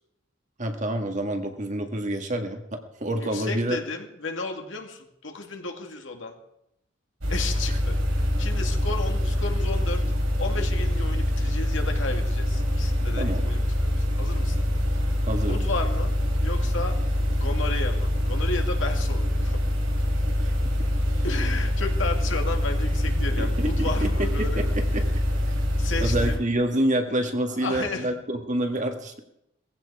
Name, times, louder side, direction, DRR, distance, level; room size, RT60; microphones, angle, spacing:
voice 1, 0.6-3.8 13.2-13.5 15.3-15.6 20.4-20.7 21.1-21.2 23.4-25.1 26.0-29.2, right 1 dB, 40° right, 5 dB, 1.8 m, -28 dB
voice 2, 3.2-6.3 7.3-10.0 10.4-15.0 15.4-16.1 16.4-19.6 21.2-24.8 25.8-26.4 27.6-28.1, left 3 dB, 70° left, 3 dB, 2.4 m, -33 dB
sound 1, 7.2-26.4, left 1 dB, 80° right, 4.3 m, -25 dB
18.5 x 15.5 x 4.9 m, 0.80 s
head